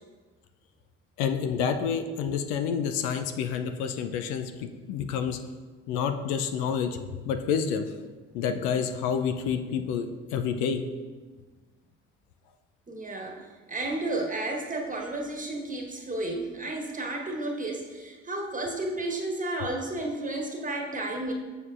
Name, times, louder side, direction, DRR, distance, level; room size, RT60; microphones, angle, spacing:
voice 1, 1.2-5.4 5.9-7.0 7.2-7.9 8.3-10.8, left 7 dB, 70° left, 7 dB, 0.6 m, -28 dB
voice 2, 12.9-13.4 13.7-21.3, right 2 dB, 20° right, 1 dB, 1.3 m, -32 dB
6.8 x 6.8 x 2.5 m, 1.3 s
hypercardioid pair, 55°, 36 cm